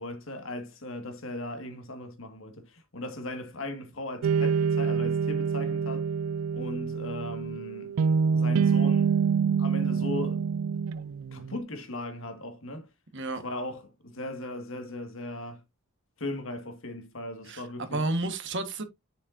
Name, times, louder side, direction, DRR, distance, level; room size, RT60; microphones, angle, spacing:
voice 1, 0.0-6.1 6.5-7.9 8.3-9.2 9.6-10.5 11.3-12.9 13.4-15.6 16.2-18.0, left 1 dB, 65° left, 1.8 m, -38 dB
sound 1, 4.2-11.6, right 6 dB, 90° right, 0.4 m, -26 dB
voice 2, 17.5-18.8, right 2 dB, 60° right, 1.4 m, -31 dB
7.1 x 6.5 x 2.6 m
head